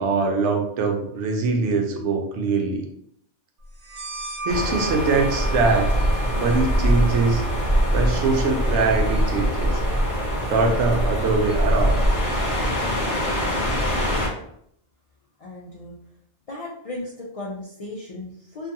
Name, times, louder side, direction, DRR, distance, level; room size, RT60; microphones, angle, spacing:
voice 1, 0.0-2.8 4.4-5.9 6.3-7.4 7.9-9.8 10.5-12.0, right 4 dB, 90° right, 3 dB, 0.9 m, -22 dB
sound 1, 3.8-11.1, equal, 60° right, 0.7 m, -38 dB
sound 2, 4.5-14.3, equal, 35° left, 0.9 m, -23 dB
voice 2, 15.4-16.0 16.5-18.7, left 2 dB, 60° left, -5 dB, 0.3 m, -36 dB
2.6 x 2.3 x 2.7 m, 0.69 s
omnidirectional pair, 1.2 m